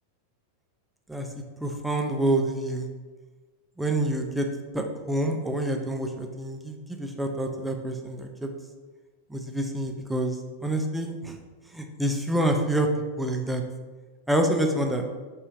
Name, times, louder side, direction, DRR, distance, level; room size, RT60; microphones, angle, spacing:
voice 1, 1.6-2.9 3.8-4.5 4.7-8.5 9.3-10.4 10.6-11.4 11.7-12.9 13.2-13.6 14.3-15.0, right 1 dB, 5° right, 3 dB, 0.3 m, -27 dB
2.4 x 2.3 x 3.2 m, 1.3 s
figure-of-eight pair, 90°, 0 cm